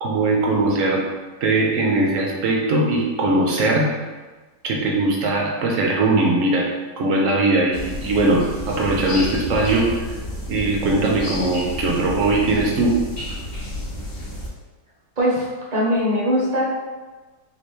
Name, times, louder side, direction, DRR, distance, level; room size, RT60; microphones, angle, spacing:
voice 1, 0.0-1.0 1.4-3.9 4.6-6.7 7.0-10.0 10.5-13.0, right 2 dB, 65° right, -1 dB, 0.8 m, -20 dB
sound 1, 7.7-14.5, left 1 dB, 35° left, 1.2 m, -31 dB
voice 2, 15.2-16.6, equal, 35° right, -5 dB, 0.7 m, -21 dB
3.2 x 2.9 x 4.3 m, 1.3 s
omnidirectional pair, 1.9 m